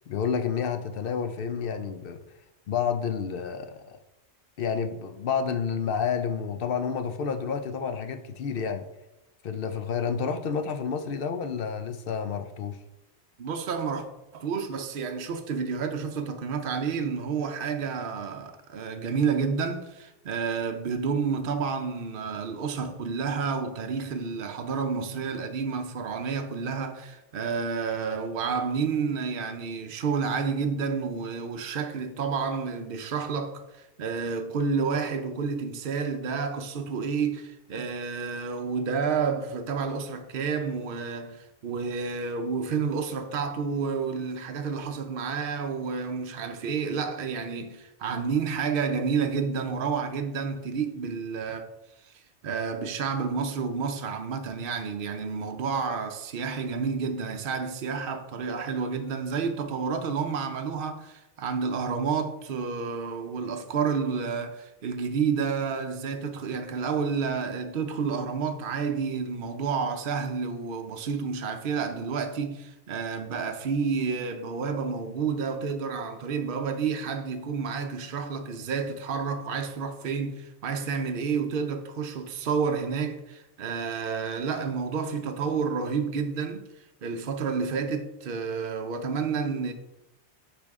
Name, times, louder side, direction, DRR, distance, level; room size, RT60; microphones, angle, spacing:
voice 1, 0.1-2.2 2.7-4.0 4.6-8.9 9.4-12.8, left 6 dB, 65° left, 0.7 m, -30 dB
voice 2, 13.4-14.1 14.3-51.7 52.4-86.6 87.0-89.7, right 5 dB, 60° right, 0.8 m, -30 dB
9.8 x 3.4 x 3.6 m
omnidirectional pair, 1.1 m